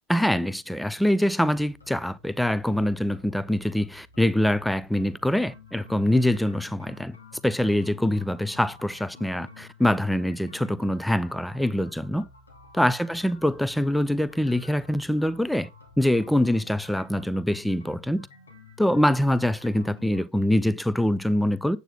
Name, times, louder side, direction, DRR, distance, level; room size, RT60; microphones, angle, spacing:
voice 1, 0.1-7.2 7.4-12.2 12.7-15.7 16.0-18.3 18.8-21.8, left 1 dB, ahead, 0.6 m, -24 dB
sound 1, 1.3-20.2, left 4 dB, 80° left, 2.8 m, -50 dB
9.0 x 8.2 x 3.6 m
figure-of-eight pair, 80°, 0 cm